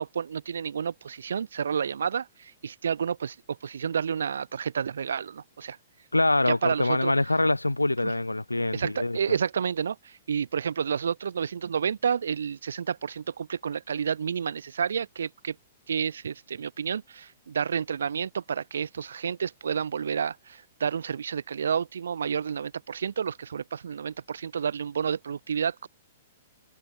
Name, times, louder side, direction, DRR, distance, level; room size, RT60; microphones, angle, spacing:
voice 1, 0.0-5.8 6.5-7.1 8.0-8.1 8.7-15.6 15.9-25.9, right 7 dB, 65° right, 2.9 m, -30 dB
voice 2, 6.1-9.2, left 2 dB, 85° left, 1.4 m, -24 dB
figure-of-eight pair, 110°, 0 cm